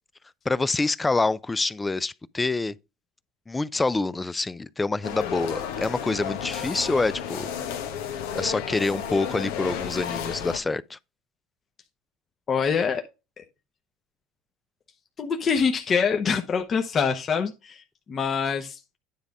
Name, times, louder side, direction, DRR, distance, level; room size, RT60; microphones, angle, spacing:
voice 1, 0.5-2.8 3.5-7.5 8.3-11.0, left 3 dB, 15° left, 0.4 m, -26 dB
sound 1, 5.0-10.6, left 8 dB, 90° left, 1.3 m, -32 dB
voice 2, 12.5-13.0 13.4-13.5 15.2-17.8 18.1-18.8, left 6 dB, 35° left, 0.9 m, -25 dB
9.8 x 3.5 x 5.2 m
supercardioid pair, 110°, 0 cm